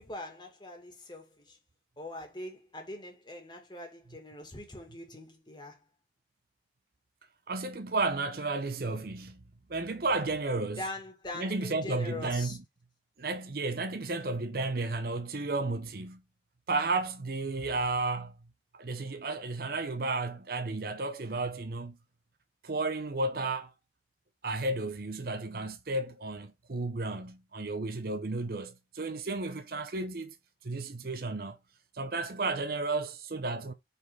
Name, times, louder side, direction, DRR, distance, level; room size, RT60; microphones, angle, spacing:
voice 1, 0.0-1.6 2.0-5.8 10.8-12.6, left 2 dB, 25° left, 2.0 m, -42 dB
voice 2, 7.5-9.4 9.7-10.8 11.3-12.6 13.2-16.2 16.7-18.4 18.7-22.0 22.6-23.7 24.4-30.3 30.6-31.6 31.9-33.7, right 3 dB, 55° right, 0.7 m, -33 dB
5.4 x 4.0 x 4.5 m
head